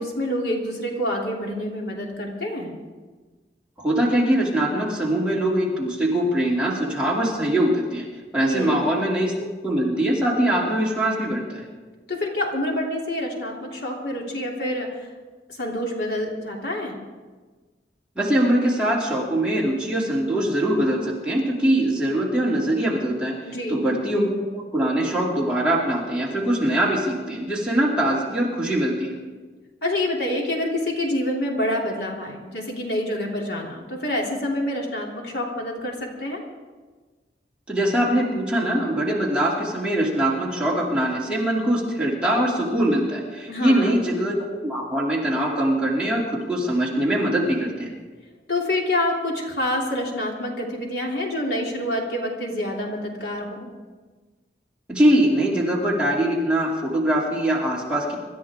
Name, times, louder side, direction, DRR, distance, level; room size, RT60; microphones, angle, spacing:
voice 1, 0.0-2.7 8.5-8.8 12.1-15.1 15.5-17.0 23.4-23.8 29.8-36.4 43.5-43.9 48.5-53.7, left 1 dB, 75° left, -2 dB, 3.1 m, -27 dB
voice 2, 3.8-8.1 8.3-11.6 18.1-23.4 23.7-29.2 37.7-47.9 54.9-58.1, right 1 dB, 5° right, -5 dB, 2.9 m, -22 dB
25.0 x 13.0 x 3.7 m, 1.3 s
head